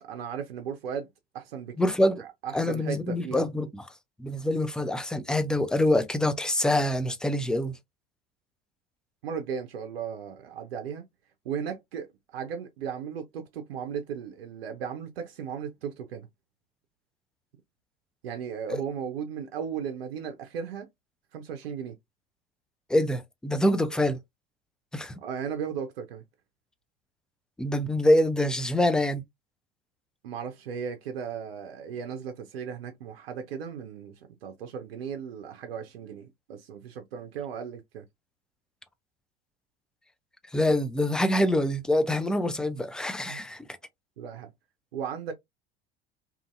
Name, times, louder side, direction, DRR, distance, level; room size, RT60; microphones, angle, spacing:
voice 1, 0.0-1.1 1.3-1.8 2.2-3.4 9.2-11.0 11.4-16.3 18.2-20.9 21.3-22.0 25.2-26.2 30.2-38.0 43.3-43.4 44.2-44.5 44.9-45.3, right 7 dB, 75° right, 0.6 m, -36 dB
voice 2, 1.8-2.2 2.5-3.9 4.2-7.7 18.7-18.8 22.9-24.2 24.9-25.1 27.6-29.2 40.5-43.6, left 1 dB, 5° left, 0.3 m, -25 dB
2.7 x 2.6 x 2.4 m
figure-of-eight pair, 75°, 30 cm